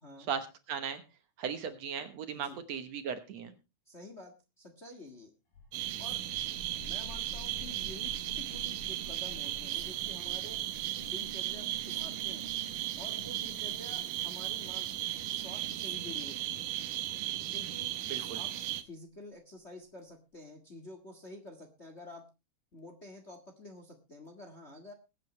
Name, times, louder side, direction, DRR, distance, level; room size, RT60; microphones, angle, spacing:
voice 1, 0.3-1.0 1.4-3.5 18.1-18.4, right 7 dB, 65° right, 8 dB, 2.2 m, -37 dB
voice 2, 3.8-5.3 6.0-6.2 6.8-10.6 11.0-12.6 13.0-15.0 15.3-16.7 17.5-17.9 18.3-22.3 22.7-24.9, left 2 dB, 30° left, 5 dB, 1.4 m, -49 dB
sound 1, 5.5-18.8, left 2 dB, 80° left, 9.5 m, -52 dB
sound 2, 5.7-18.8, right 13 dB, 85° right, 2.6 m, -36 dB
21.5 x 9.0 x 3.2 m, 0.28 s
omnidirectional pair, 3.6 m